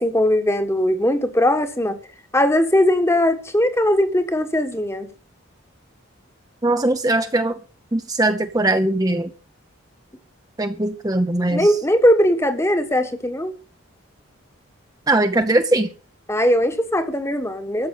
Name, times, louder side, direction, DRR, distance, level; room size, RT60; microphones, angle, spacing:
voice 1, 0.0-2.0 2.3-5.1 11.5-13.5 16.3-17.9, left 1 dB, 15° left, 1.3 m, -19 dB
voice 2, 6.6-7.6 7.9-9.3 10.6-11.7 15.1-15.9, right 2 dB, 20° right, 0.7 m, -20 dB
13.5 x 7.8 x 8.2 m
head